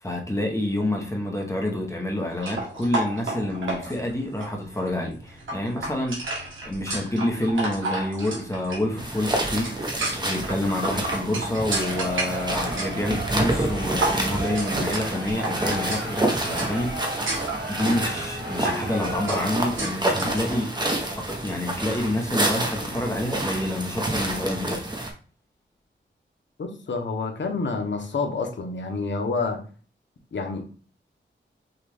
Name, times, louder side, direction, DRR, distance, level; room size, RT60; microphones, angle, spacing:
voice 1, 0.0-16.9 17.7-20.8 21.1-24.8, left 1 dB, 15° left, 1.0 m, -28 dB
sound 1, 2.3-20.4, right 2 dB, 90° right, 1.5 m, -33 dB
sound 2, 9.0-25.1, right 1 dB, 20° right, 0.9 m, -28 dB
Crowd, 11.5-20.0, right 2 dB, 60° right, 2.0 m, -35 dB
voice 2, 26.6-29.6 30.3-30.6, left 4 dB, 70° left, 1.0 m, -28 dB
5.8 x 2.5 x 3.4 m
wide cardioid pair, 120°, 20 cm